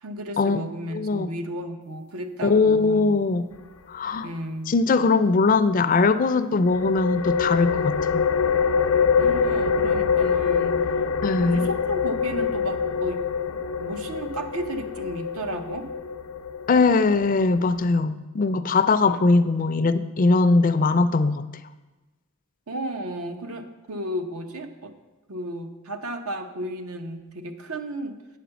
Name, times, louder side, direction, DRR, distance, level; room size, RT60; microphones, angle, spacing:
voice 1, 0.0-3.2 4.2-4.7 9.2-10.8 11.4-13.2 13.5-15.9 19.1-19.2 22.7-24.9 25.3-28.2, right 1 dB, 80° right, 7 dB, 0.8 m, -33 dB
voice 2, 0.9-1.3 2.4-3.5 3.9-4.3 4.7-8.3 11.2-11.7 16.7-21.5, left 3 dB, 40° left, 12 dB, 0.3 m, -21 dB
sound 1, 6.6-18.0, left 6 dB, 90° left, 0.6 m, -25 dB
8.9 x 5.1 x 6.9 m, 1.1 s
head